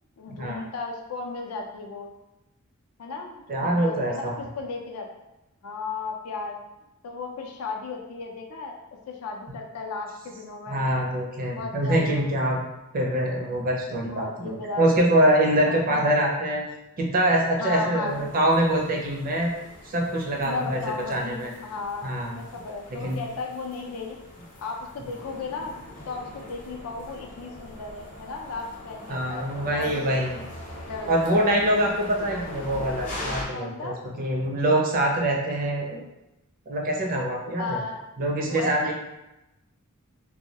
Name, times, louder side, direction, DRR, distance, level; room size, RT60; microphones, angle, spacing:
voice 1, 0.2-2.1 3.0-5.1 5.6-6.6 7.0-8.8 9.1-10.8 11.5-12.3 14.1-14.9 15.6-16.2 17.6-18.2 20.4-24.2 24.6-25.7 26.1-30.1 30.9-31.5 33.5-34.0 37.6-38.0 38.5-38.9, left 4 dB, 80° left, 2 dB, 0.4 m, -35 dB
voice 2, 3.5-4.3 10.7-12.6 12.9-16.6 17.0-19.5 19.8-20.8 21.1-21.5 22.0-22.4 23.0-23.2 29.1-30.4 31.1-36.0 36.7-37.8 38.2-38.9, right 1 dB, 40° right, -1 dB, 0.4 m, -24 dB
sound 1, 18.1-33.4, left 1 dB, 35° left, 0.6 m, -42 dB
2.2 x 2.0 x 2.7 m, 0.96 s
head